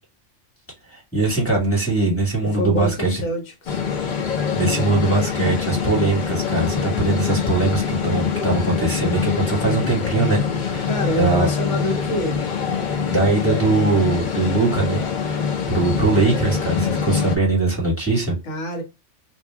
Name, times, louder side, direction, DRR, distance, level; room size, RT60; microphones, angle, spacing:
voice 1, 0.9-3.2 4.6-11.5 13.1-15.0 15.7-18.3, right 3 dB, 10° left, 1.4 m, -21 dB
voice 2, 2.5-3.8 10.9-12.4 18.4-18.8, equal, 70° left, 1.2 m, -26 dB
sound 1, 3.7-17.4, left 6 dB, 50° left, 0.6 m, -24 dB
2.6 x 2.2 x 3.4 m
omnidirectional pair, 1.3 m